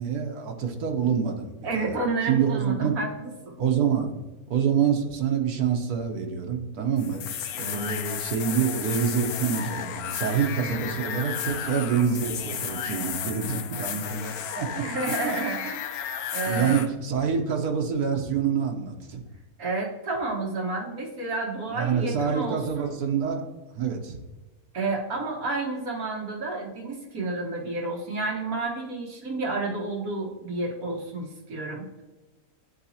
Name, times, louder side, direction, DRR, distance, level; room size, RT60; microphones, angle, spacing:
voice 1, 0.0-2.0 2.3-3.0 3.6-4.1 4.5-7.2 7.5-14.9 16.4-19.2 21.7-23.4 23.7-24.2, right 7 dB, 85° right, 3 dB, 1.4 m, -26 dB
voice 2, 1.6-3.6 12.9-13.0 14.8-15.9 16.3-16.8 19.6-22.9 24.7-32.0, right 3 dB, 70° right, -1 dB, 1.8 m, -30 dB
sound 1, 7.0-16.9, left 9 dB, 80° left, 1.1 m, -33 dB
9.7 x 4.1 x 2.8 m, 1.2 s
omnidirectional pair, 1.6 m